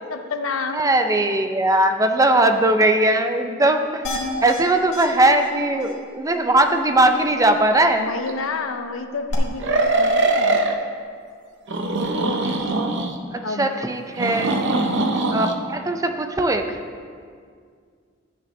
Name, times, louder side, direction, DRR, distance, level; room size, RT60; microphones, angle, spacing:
voice 1, 0.1-0.8 7.9-10.6 13.4-13.7 15.2-15.3, left 4 dB, 90° left, 7 dB, 0.8 m, -29 dB
voice 2, 0.7-4.0 4.4-8.1 13.3-14.5 15.3-16.8, right 1 dB, 15° right, 6 dB, 0.5 m, -19 dB
sound 1, 4.0-4.6 4.9-5.0 5.4-5.5 5.8-5.9 9.3-9.4, left 2 dB, 60° left, 1.9 m, -29 dB
sound 2, 8.3-8.4 9.6-10.7 11.7-13.2 14.2-15.5, right 2 dB, 60° right, 0.8 m, -21 dB
13.5 x 8.7 x 3.2 m, 2.1 s
head